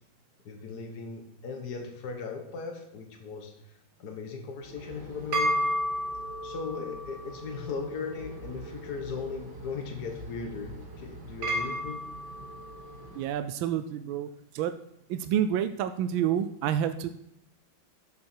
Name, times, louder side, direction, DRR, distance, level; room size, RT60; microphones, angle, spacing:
voice 1, 0.5-3.5 4.0-5.6 6.4-12.0, left 5 dB, 55° left, 4 dB, 1.8 m, -38 dB
sound 1, 4.7-13.2, equal, 60° right, 2.8 m, -34 dB
voice 2, 13.1-14.8 15.1-17.1, right 10 dB, 85° right, 11 dB, 1.4 m, -29 dB
11.0 x 7.5 x 4.5 m, 0.77 s
omnidirectional pair, 2.1 m